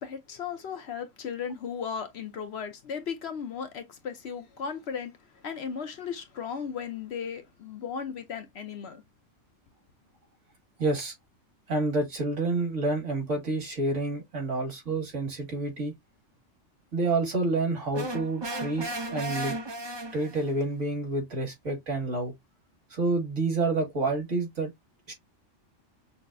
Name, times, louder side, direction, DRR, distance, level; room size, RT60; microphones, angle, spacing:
voice 1, 0.0-9.0, left 6 dB, 60° left, 0.9 m, -36 dB
voice 2, 10.8-11.1 11.7-15.9 16.9-19.6 20.1-22.3 22.9-24.7 25.1-25.2, right 2 dB, 70° right, 2.3 m, -28 dB
sound 1, 17.9-20.6, right 1 dB, 30° right, 0.6 m, -35 dB
6.0 x 2.1 x 2.5 m
omnidirectional pair, 1.3 m